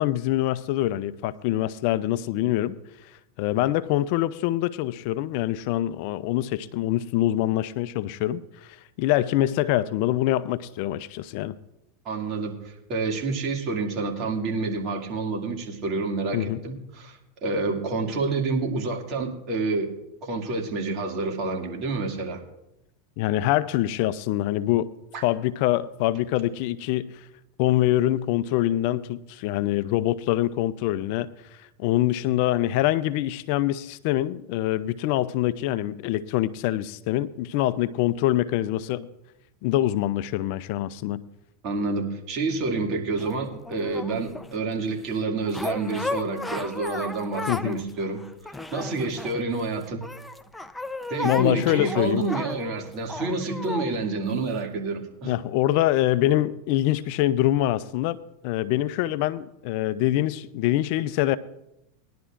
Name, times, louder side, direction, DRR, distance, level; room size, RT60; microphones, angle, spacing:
voice 1, 0.0-2.8 3.0-11.6 16.3-16.6 23.2-24.9 25.2-27.3 27.6-31.3 31.6-39.1 39.6-41.2 47.5-47.8 51.2-52.2 55.2-61.4, left 14 dB, 60° left, 16 dB, 0.4 m, -25 dB
voice 2, 12.0-19.9 20.2-22.4 25.1-25.2 41.6-48.2 48.7-50.0 51.1-55.3, right 3 dB, 45° right, 1 dB, 2.3 m, -28 dB
sound 1, 43.2-44.5 45.4-47.8 48.2-49.6 50.0-53.9 54.6-54.7, left 2 dB, 5° left, 0.6 m, -34 dB
19.5 x 11.0 x 2.5 m, 0.88 s
hypercardioid pair, 100°, 0 cm